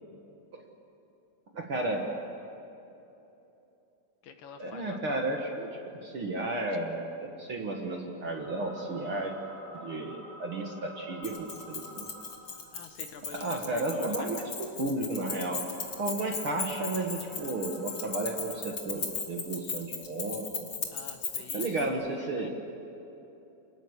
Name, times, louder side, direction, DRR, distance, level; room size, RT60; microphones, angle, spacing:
voice 1, 1.5-2.1 4.6-9.3 9.7-12.1 13.4-14.5 14.8-15.7 16.0-20.7 21.5-22.5, right 2 dB, 50° right, 2 dB, 1.6 m, -33 dB
voice 2, 4.2-5.4 6.7-6.8 12.7-14.3 20.9-21.8 22.1-22.5, left 7 dB, 70° left, 6 dB, 2.6 m, -47 dB
sound 1, 8.2-12.7 15.6-18.7, equal, 30° right, 8.8 m, -50 dB
Keys jangling, 11.2-21.9, left 5 dB, 40° left, 2.3 m, -37 dB
28.0 x 19.5 x 8.2 m, 3.0 s
omnidirectional pair, 4.5 m